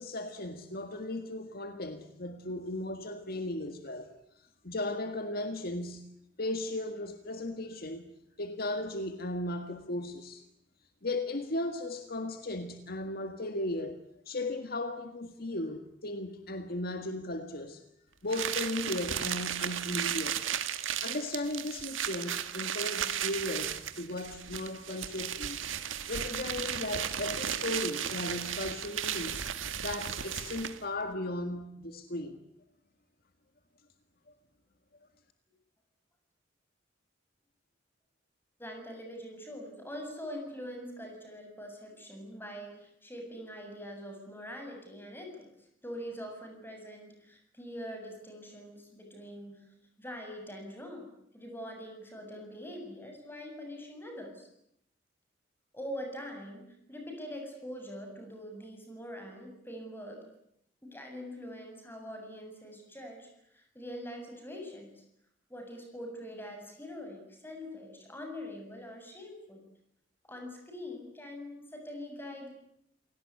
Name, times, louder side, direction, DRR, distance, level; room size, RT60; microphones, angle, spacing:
voice 1, 0.0-6.1 6.4-8.1 8.4-10.4 11.0-14.0 14.3-17.8 18.2-20.4 21.0-25.6 26.1-29.5 29.8-32.4, left 1 dB, 50° left, 1.8 m, -36 dB
sound 1, 18.3-30.9, right 9 dB, 90° right, 1.7 m, -35 dB
voice 2, 38.6-49.7 50.0-54.5 55.7-60.2 60.8-65.0 65.5-69.7 70.2-72.5, equal, 10° left, 7.5 m, -43 dB
28.0 x 18.5 x 9.8 m
head